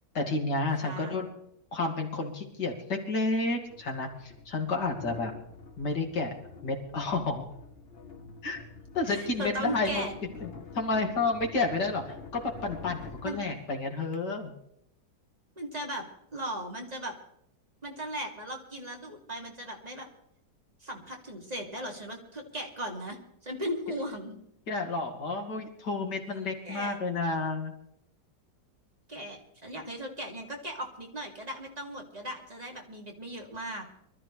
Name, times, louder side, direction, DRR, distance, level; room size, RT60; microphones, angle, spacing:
voice 1, 0.1-1.3 1.7-5.3 5.8-6.3 6.6-7.5 8.4-8.6 8.9-10.1 10.4-10.5 10.7-14.5 24.7-27.7, left 3 dB, 75° left, 2 dB, 2.9 m, -30 dB
voice 2, 0.8-1.3 9.0-10.1 13.2-13.4 15.6-16.0 16.3-17.1 17.8-20.1 20.8-23.2 23.4-24.4 26.6-27.0 29.1-33.8, right 1 dB, 20° right, 0 dB, 2.7 m, -37 dB
sound 1, 2.5-2.6 3.6-14.2, left 4 dB, 40° left, 1.2 m, -47 dB
24.0 x 13.5 x 3.3 m, 0.74 s
omnidirectional pair, 1.8 m